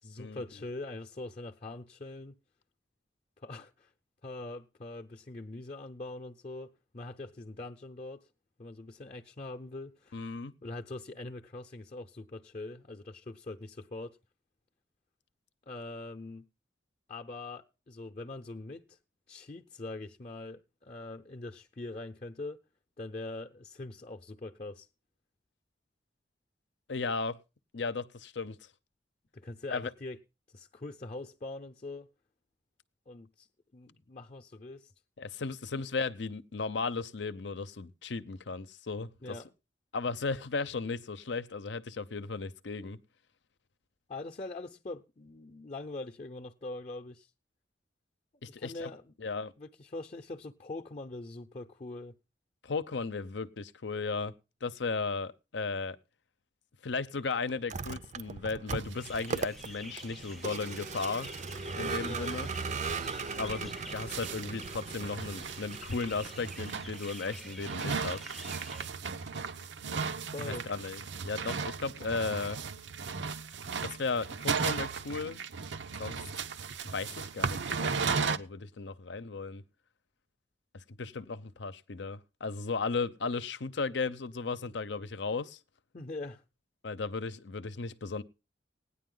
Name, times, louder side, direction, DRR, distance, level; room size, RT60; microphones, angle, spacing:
voice 1, 0.0-2.3 3.4-3.9 4.2-8.2 8.6-10.2 10.6-14.2 15.7-16.5 17.1-19.0 19.3-22.6 23.0-24.9 29.3-30.2 30.5-32.1 33.1-33.5 33.7-34.9 39.2-39.5 44.1-47.3 48.5-49.1 49.6-52.1 62.0-62.3 70.3-70.6 85.9-86.4, left 2 dB, 40° left, 0.7 m, -43 dB
voice 2, 10.1-10.6 26.9-27.4 27.7-28.6 29.7-29.9 35.2-39.4 39.9-43.0 48.4-48.9 49.2-49.5 52.6-54.3 54.6-56.0 56.8-61.3 61.8-62.5 63.4-68.2 70.4-72.6 73.8-75.5 76.0-76.2 76.9-79.6 80.7-85.6 86.8-88.2, left 4 dB, 80° left, 0.7 m, -35 dB
Vehicle, 57.5-66.9, right 4 dB, 40° right, 0.5 m, -38 dB
sound 1, 58.8-59.2 59.5-59.6 59.8-59.9 60.3-60.4 60.6-61.2 61.6-61.7 62.0-62.1 62.6-62.7 63.3-78.4, right 5 dB, 85° right, 0.7 m, -36 dB
sound 2, 58.9-68.9, left 1 dB, ahead, 0.5 m, -49 dB
17.0 x 10.0 x 3.8 m
head